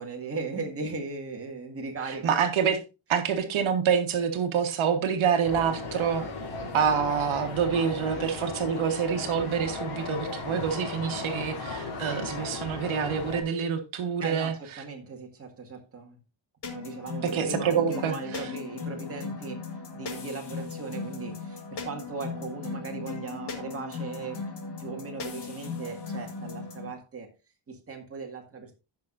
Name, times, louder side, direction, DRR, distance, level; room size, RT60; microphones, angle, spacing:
voice 1, 0.0-2.3 14.2-16.2 16.7-24.5 24.8-27.3 27.7-28.8, right 4 dB, 30° right, 2.0 m, -38 dB
voice 2, 2.2-2.8 3.1-6.2 6.7-14.5 17.3-18.4, right 7 dB, 70° right, 1.5 m, -27 dB
sound 1, 5.4-13.4, left 3 dB, 80° left, 3.6 m, -36 dB
sound 2, 16.6-26.9, left 4 dB, 55° left, 2.1 m, -37 dB
16.0 x 5.9 x 2.6 m
wide cardioid pair, 165°, 49 cm